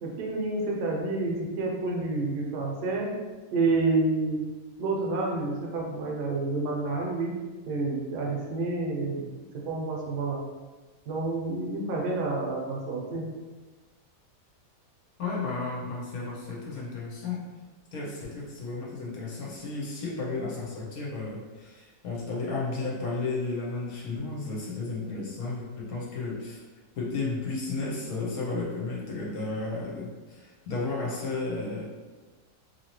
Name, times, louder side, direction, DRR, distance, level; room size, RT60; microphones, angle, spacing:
voice 1, 0.0-3.1 3.5-4.4 4.8-7.4 7.7-9.3 9.5-10.4 11.1-13.3, right 3 dB, 75° right, -2 dB, 1.2 m, -29 dB
voice 2, 15.2-17.4 17.9-26.6 27.0-31.9, left 3 dB, 65° left, -4 dB, 1.0 m, -33 dB
2.8 x 2.7 x 2.9 m, 1.3 s
omnidirectional pair, 1.8 m